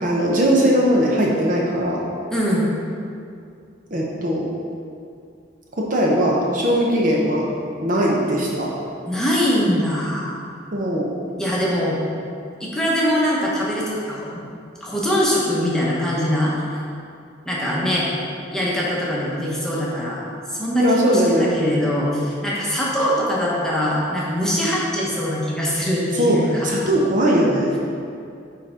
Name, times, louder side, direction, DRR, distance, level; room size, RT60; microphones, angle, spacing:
voice 1, 0.0-2.0 3.9-4.4 5.8-7.4 7.8-8.7 10.7-11.1 20.8-21.6 26.1-27.8, equal, 40° right, -3 dB, 0.7 m, -19 dB
voice 2, 2.3-2.7 9.1-10.4 11.4-12.0 12.6-14.4 14.8-16.5 17.4-18.1 18.5-20.2 20.5-26.7, equal, 5° left, -6 dB, 1.0 m, -22 dB
5.6 x 4.3 x 5.0 m, 2.4 s
head